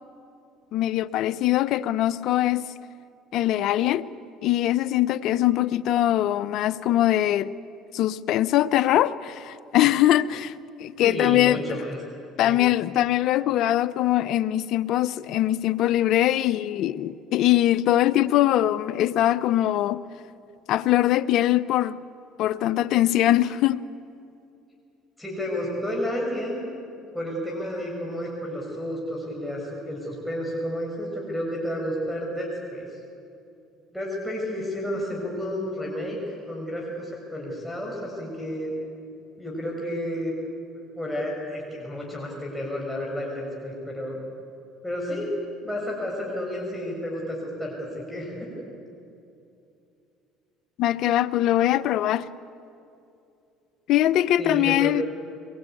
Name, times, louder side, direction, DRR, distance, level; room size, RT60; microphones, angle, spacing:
voice 1, 0.7-2.7 3.3-4.1 4.4-7.5 7.9-10.5 10.8-11.8 12.4-20.0 20.7-22.0 22.4-23.8 50.8-52.3 53.9-55.0, left 13 dB, 65° left, 0.7 m, -22 dB
voice 2, 11.0-12.0 12.4-12.6 25.2-26.7 27.1-32.9 33.9-36.2 36.5-38.7 39.4-40.3 40.9-44.2 44.8-48.5 54.4-54.9, equal, ahead, 6.4 m, -31 dB
23.0 x 20.5 x 9.2 m
supercardioid pair, 85°, 0 cm